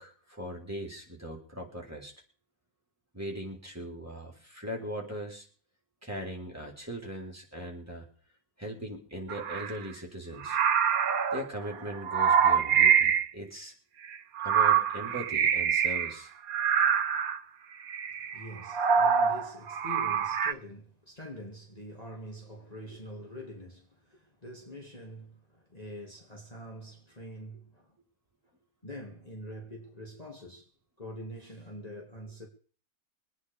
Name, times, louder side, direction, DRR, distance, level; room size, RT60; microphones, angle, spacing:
voice 1, 0.0-2.1 3.1-5.5 6.0-8.1 8.6-10.6 11.3-13.7 14.4-16.3, equal, 10° right, 3.8 m, -39 dB
sound 1, 9.3-9.8 10.4-13.3 14.1-16.1 16.5-17.4 17.9-20.5, right 7 dB, 85° right, 1.4 m, -25 dB
voice 2, 18.3-27.9 28.8-30.7 31.0-32.5, equal, 25° left, 2.4 m, -45 dB
23.5 x 9.6 x 5.0 m
omnidirectional pair, 1.5 m